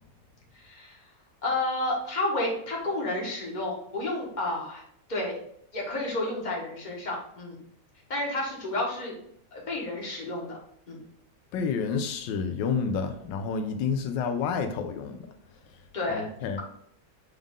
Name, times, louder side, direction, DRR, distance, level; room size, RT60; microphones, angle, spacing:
voice 1, 0.5-1.0 1.4-4.8 5.1-5.3 5.7-7.6 8.1-9.1 9.5-10.6 10.9-11.0 15.9-16.2, left 2 dB, 25° left, 1.6 m, -31 dB
voice 2, 11.5-15.2 16.1-16.6, left 5 dB, 85° left, 1.3 m, -29 dB
7.5 x 3.6 x 3.6 m
omnidirectional pair, 1.9 m